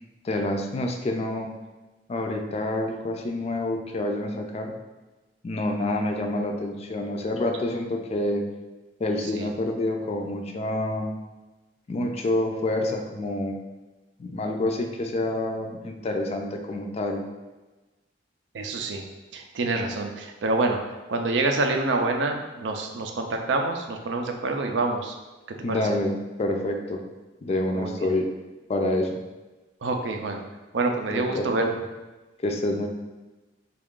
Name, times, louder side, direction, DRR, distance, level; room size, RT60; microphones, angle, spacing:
voice 1, 0.2-1.5 2.1-4.7 5.4-8.5 9.0-11.1 11.9-13.6 14.2-17.2 25.6-26.1 26.4-27.0 27.4-28.3 28.7-29.2 30.3-30.4 31.1-31.7 32.4-32.9, left 1 dB, 35° left, 3 dB, 0.3 m, -27 dB
voice 2, 18.5-19.0 19.3-20.8 21.1-25.2 25.7-25.8 27.7-28.1 29.8-30.4 30.7-31.7, right 3 dB, 70° right, 3 dB, 0.5 m, -27 dB
3.5 x 2.4 x 3.6 m, 1.2 s
head